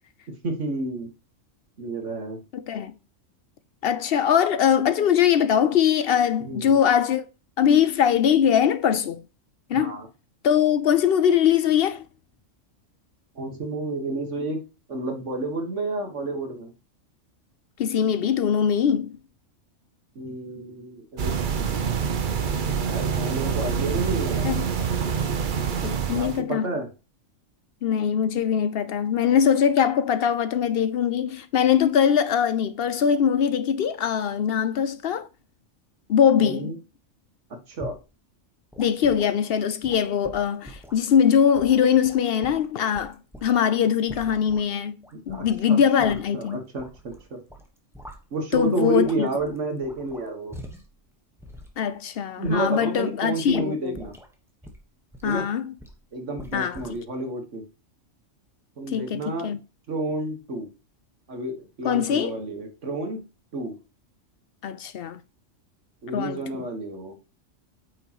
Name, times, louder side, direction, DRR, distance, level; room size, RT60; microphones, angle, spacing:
voice 1, 0.4-1.1 1.8-2.4 6.4-6.8 9.7-10.1 13.4-14.6 14.9-16.7 20.2-21.3 22.9-24.5 26.1-26.9 36.4-36.8 37.7-38.0 45.1-47.4 48.3-50.5 52.4-54.2 55.2-55.5 56.1-57.6 58.8-59.6 59.9-60.7 61.3-63.2 63.5-63.7 66.0-67.2, right 2 dB, 65° right, 1.9 m, -30 dB
voice 2, 2.5-2.9 3.8-7.2 7.6-9.2 9.7-10.0 10.4-12.1 17.8-19.2 24.4-24.7 25.8-26.7 27.8-35.3 36.1-36.7 38.8-45.0 45.3-46.6 48.5-49.3 51.8-54.0 55.2-55.7 56.5-56.8 58.9-59.6 61.8-62.4 64.6-65.2 66.1-66.6, left 8 dB, 60° left, 0.6 m, -22 dB
sound 1, 21.2-26.4, right 6 dB, 45° right, 0.8 m, -26 dB
sound 2, 37.8-38.1 38.7-39.3 39.8-41.1 41.5-43.6 44.1-44.7 45.0-45.7 46.0-47.2 47.5-48.7 49.0-51.0 51.4-51.7 52.4-52.8 53.5-53.7 53.9-54.4 54.6-55.4 55.8-56.0 56.4-57.0, equal, ahead, 1.1 m, -43 dB
8.6 x 6.2 x 3.0 m
omnidirectional pair, 1.3 m